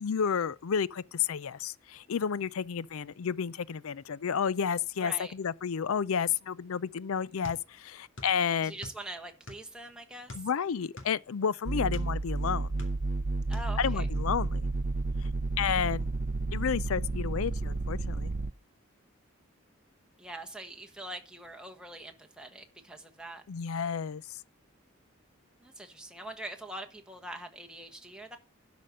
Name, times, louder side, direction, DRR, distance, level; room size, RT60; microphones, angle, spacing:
voice 1, 0.0-8.7 10.3-12.7 13.8-14.7 15.6-16.1 16.5-18.3 23.5-24.4, left 7 dB, 85° left, 0.5 m, -31 dB
voice 2, 5.0-5.3 8.6-10.4 13.5-14.1 20.2-23.4 25.6-28.4, right 1 dB, 5° right, 1.4 m, -43 dB
sound 1, 7.4-8.4 8.6-9.8 10.3-12.1 12.6-13.2 13.5-13.7, left 2 dB, 60° left, 2.5 m, -46 dB
sound 2, 11.6-18.5, right 2 dB, 40° right, 0.5 m, -31 dB
12.0 x 5.2 x 6.4 m
head